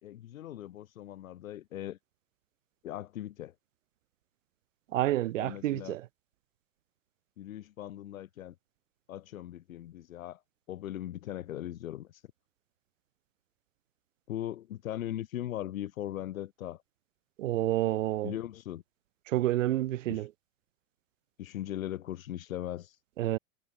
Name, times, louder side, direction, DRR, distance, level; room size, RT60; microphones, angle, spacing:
voice 1, 0.0-2.0 2.8-3.5 5.4-6.0 7.4-8.5 9.1-10.4 10.7-12.1 14.3-16.8 18.2-18.8 20.1-20.2 21.4-22.9, left 12 dB, 80° left, 5.8 m, -39 dB
voice 2, 4.9-6.1 17.4-18.3 19.3-20.3 23.2-23.4, right 14 dB, 65° right, 2.2 m, -29 dB
supercardioid pair, 170°, 40 cm